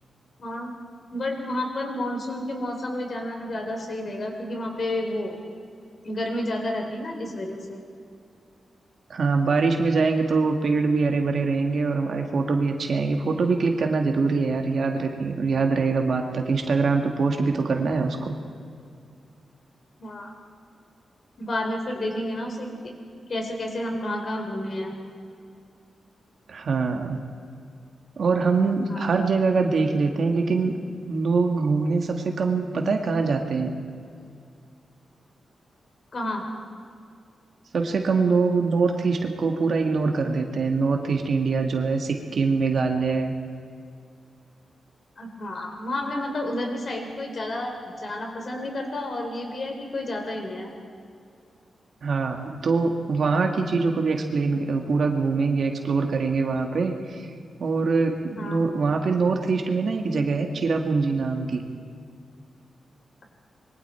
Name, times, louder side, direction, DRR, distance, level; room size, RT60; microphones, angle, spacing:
voice 1, 0.4-0.7 1.1-5.4 6.0-7.8 20.0-20.3 21.4-22.9 23.3-24.9 28.9-29.1 36.1-36.4 45.2-50.7 58.4-58.7, left 1 dB, 45° left, 3 dB, 3.9 m, -30 dB
voice 2, 9.1-18.4 26.5-27.2 28.2-30.8 31.1-33.7 37.7-43.3 52.0-57.2 57.6-61.6, right 4 dB, 60° right, 3 dB, 1.9 m, -23 dB
26.5 x 23.0 x 4.5 m, 2.3 s
wide cardioid pair, 140°, 0 cm